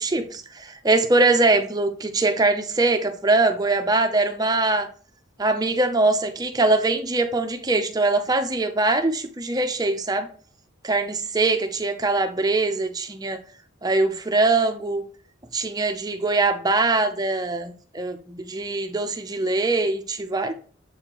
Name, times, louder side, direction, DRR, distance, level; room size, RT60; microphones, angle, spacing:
voice 1, 0.0-4.9 5.4-10.3 10.8-13.4 13.8-15.0 15.5-20.5, right 2 dB, 20° right, 0.6 m, -22 dB
7.7 x 4.3 x 3.0 m
head